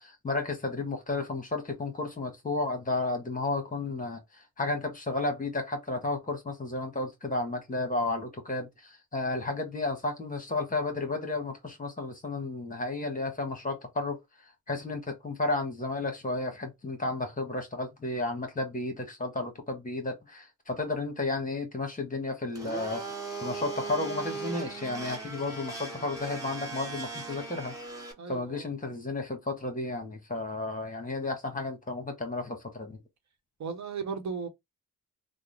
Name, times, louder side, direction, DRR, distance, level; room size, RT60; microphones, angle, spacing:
voice 1, 0.0-14.2 14.7-23.0 23.4-27.7 28.3-33.0, left 2 dB, 25° left, 1.3 m, -32 dB
Domestic sounds home sounds, 22.5-28.1, right 3 dB, 10° right, 1.5 m, -38 dB
voice 2, 28.2-28.7 33.6-34.5, right 5 dB, 55° right, 1.1 m, -36 dB
3.6 x 2.2 x 3.2 m
cardioid pair, 85°, 33 cm